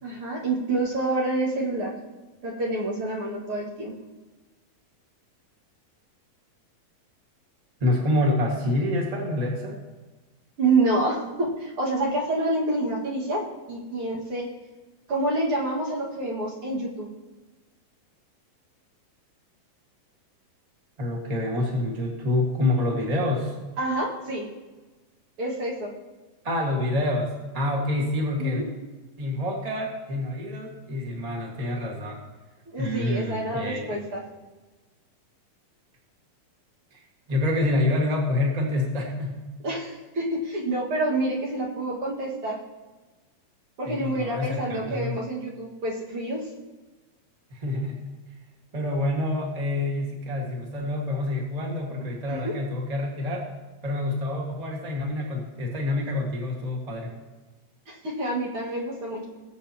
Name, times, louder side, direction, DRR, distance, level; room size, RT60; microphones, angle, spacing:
voice 1, 0.0-1.9 2.4-3.9 10.6-13.4 13.7-14.5 15.1-17.1 23.8-24.4 25.4-25.9 28.4-28.6 32.7-34.2 39.6-42.6 43.8-46.4 52.3-52.5 57.9-59.3, right 2 dB, 45° right, -4 dB, 2.2 m, -27 dB
voice 2, 7.8-9.8 21.0-23.5 26.4-28.6 29.2-32.2 32.8-34.0 36.9-37.0 37.3-39.4 43.8-45.2 47.5-48.0 48.7-53.4 53.8-57.1, left 1 dB, 25° right, -2 dB, 0.7 m, -27 dB
21.0 x 7.7 x 2.9 m, 1.2 s
omnidirectional pair, 4.0 m